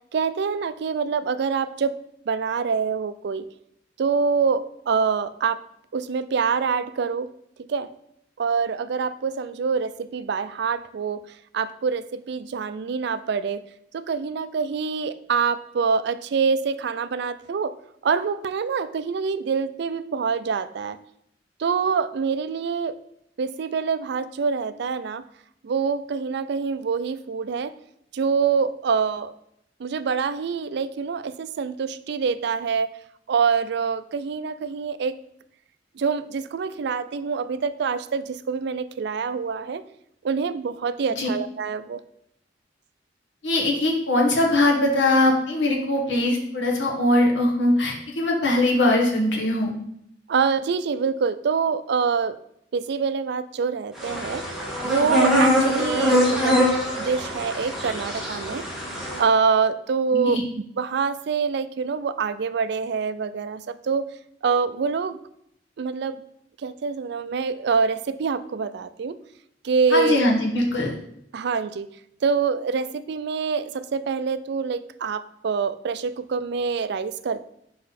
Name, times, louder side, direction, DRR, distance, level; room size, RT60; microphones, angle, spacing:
voice 1, 0.1-2.0 2.3-3.4 4.0-5.6 5.9-7.3 7.7-7.9 8.4-11.2 11.5-13.6 13.9-17.7 18.0-21.0 21.6-23.0 23.4-25.2 25.6-27.7 28.1-29.3 29.8-32.9 33.3-35.2 36.0-39.8 40.2-42.0 50.3-52.4 52.7-54.5 54.8-56.6 57.0-58.7 59.2-60.4 60.8-64.1 64.4-65.2 65.8-66.2 66.6-69.2 69.6-70.2 71.3-71.9 72.2-77.4, right 5 dB, 65° right, 14 dB, 0.4 m, -25 dB
voice 2, 43.4-49.7 60.1-60.4 69.9-70.9, left 1 dB, 75° left, 0 dB, 1.5 m, -21 dB
sound 1, 54.0-59.2, equal, ahead, 1.7 m, -23 dB
5.8 x 5.1 x 4.1 m, 0.74 s
head